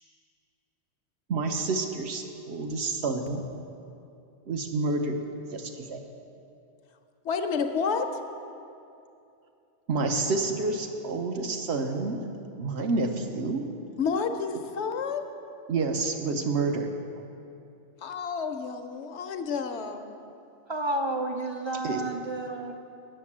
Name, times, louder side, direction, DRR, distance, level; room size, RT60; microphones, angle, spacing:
voice 1, 1.3-3.4 4.5-5.2 5.5-6.0 9.9-12.2 12.6-13.6 15.7-17.2 21.8-22.0, right 3 dB, 65° right, 5 dB, 1.1 m, -29 dB
voice 2, 7.2-8.1 14.0-15.3 18.0-20.1, left 5 dB, 75° left, 7 dB, 1.0 m, -30 dB
voice 3, 20.7-22.7, right 1 dB, 50° right, 3 dB, 0.3 m, -30 dB
8.9 x 7.4 x 7.2 m, 2.7 s
omnidirectional pair, 1.2 m